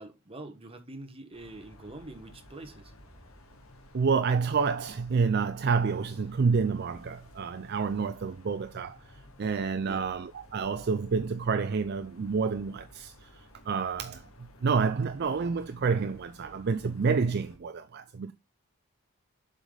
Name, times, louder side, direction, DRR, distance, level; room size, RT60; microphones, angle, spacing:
voice 1, 0.0-2.9 9.8-10.3, right 2 dB, 25° right, 1.3 m, -45 dB
sound 1, 1.3-17.6, left 1 dB, 75° left, 2.0 m, -54 dB
voice 2, 3.9-9.0 9.4-13.3 13.7-14.2 14.6-18.3, right 5 dB, 50° right, 0.4 m, -28 dB
7.5 x 5.0 x 3.9 m
head